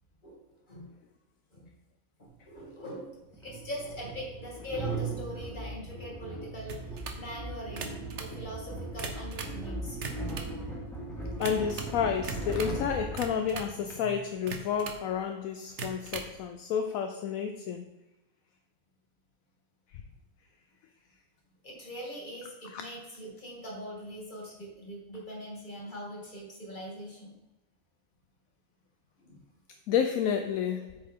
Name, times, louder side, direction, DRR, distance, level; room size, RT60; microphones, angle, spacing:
voice 1, 2.2-10.0 13.5-13.6 14.0-14.2 21.6-27.3 29.2-29.4, equal, 30° left, -4 dB, 2.6 m, -42 dB
sound 1, 2.3-2.4 3.3-13.9, right 2 dB, ahead, 1.8 m, -38 dB
sound 2, 6.7-7.2 7.7-8.3 8.8-9.6 9.9-10.6 11.4-11.9 12.2-12.8 13.2-13.8 14.5-15.1 15.7-16.3, right 5 dB, 55° right, 1.2 m, -40 dB
voice 2, 11.4-17.9 19.9-20.0 22.7-22.9 29.9-31.0, left 7 dB, 75° left, 6 dB, 1.0 m, -31 dB
8.4 x 6.7 x 3.7 m, 0.98 s
omnidirectional pair, 1.5 m